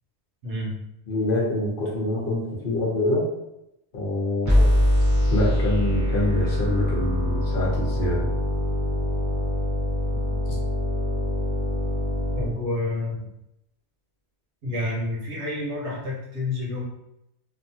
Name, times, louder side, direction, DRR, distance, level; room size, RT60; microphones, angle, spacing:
voice 1, 0.4-0.8 10.1-10.4 12.3-13.3 14.6-16.8, left 2 dB, 80° right, -5 dB, 1.2 m, -29 dB
voice 2, 1.1-3.2 3.9-4.7 5.3-8.3, left 1 dB, 55° left, -4 dB, 0.9 m, -26 dB
sound 1, 4.5-12.5, left 1 dB, 15° right, 0.8 m, -23 dB
2.9 x 2.1 x 2.7 m, 0.85 s
omnidirectional pair, 1.2 m